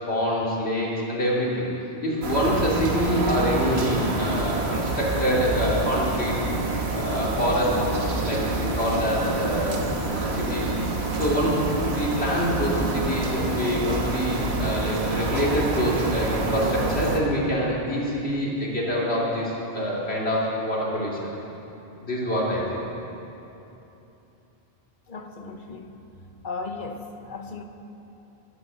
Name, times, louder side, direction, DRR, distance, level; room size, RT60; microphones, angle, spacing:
voice 1, 0.1-1.7 2.0-6.4 6.9-7.7 8.2-9.7 10.2-10.7 11.1-11.6 11.9-21.2 22.0-22.8, equal, 85° left, -5 dB, 3.0 m, -26 dB
sound 1, 2.2-17.2, right 2 dB, 80° right, 1.6 m, -27 dB
voice 2, 25.1-25.9 26.4-27.6, left 4 dB, 55° left, 5 dB, 1.1 m, -36 dB
13.0 x 9.4 x 8.0 m, 3.0 s
omnidirectional pair, 1.1 m